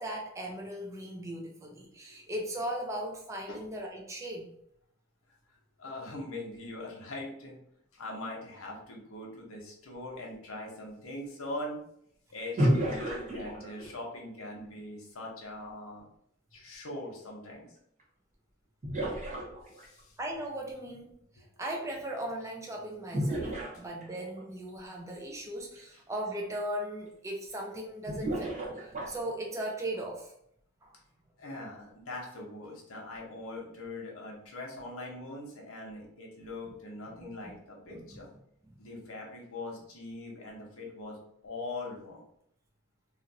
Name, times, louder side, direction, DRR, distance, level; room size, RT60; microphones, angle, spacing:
voice 1, 0.0-4.6 20.2-23.5 23.8-30.3 30.8-30.9 37.2-37.3 37.9-38.2 38.7-38.8, right 1 dB, 15° right, 0 dB, 0.4 m, -38 dB
voice 2, 5.5-7.6 7.9-11.8 12.3-16.1 16.5-17.7 19.7-20.2 25.9-26.0 31.4-38.3 38.8-41.2 41.4-42.2, left 2 dB, 90° left, -1 dB, 0.8 m, -42 dB
sound 1, 12.6-14.1 18.0-18.1 18.8-20.0 23.1-24.4 25.8-25.9 26.3-26.4 28.1-29.3, equal, 35° right, 0.9 m, -31 dB
2.5 x 2.0 x 3.9 m, 0.71 s
head